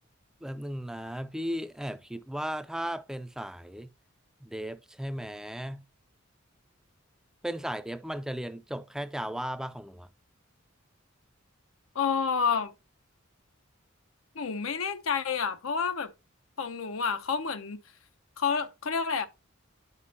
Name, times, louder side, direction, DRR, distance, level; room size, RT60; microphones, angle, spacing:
voice 1, 0.4-3.9 4.4-5.8 7.4-10.1, equal, 5° right, 0.4 m, -36 dB
voice 2, 11.9-12.7 14.3-16.1 16.6-17.8 18.4-19.3, left 6 dB, 85° left, 0.7 m, -29 dB
9.7 x 5.1 x 2.8 m
head